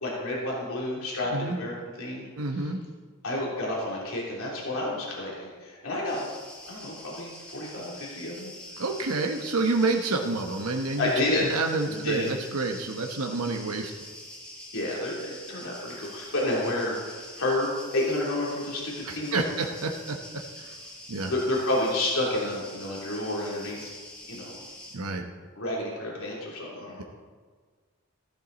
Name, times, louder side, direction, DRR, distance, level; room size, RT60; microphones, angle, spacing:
voice 1, 0.0-2.3 3.2-6.3 6.6-8.5 11.0-11.5 11.9-12.3 14.7-19.6 21.2-23.9 24.3-24.6 25.6-27.0, left 1 dB, 70° left, -4 dB, 3.1 m, -30 dB
voice 2, 2.4-2.8 8.8-11.1 11.5-13.9 19.0-20.2 20.6-20.8 21.1-21.3 24.9-25.2, right 3 dB, 80° right, 3 dB, 1.0 m, -28 dB
sound 1, 6.0-24.9, left 1 dB, 5° left, 2.8 m, -45 dB
14.0 x 11.5 x 4.0 m, 1.5 s
head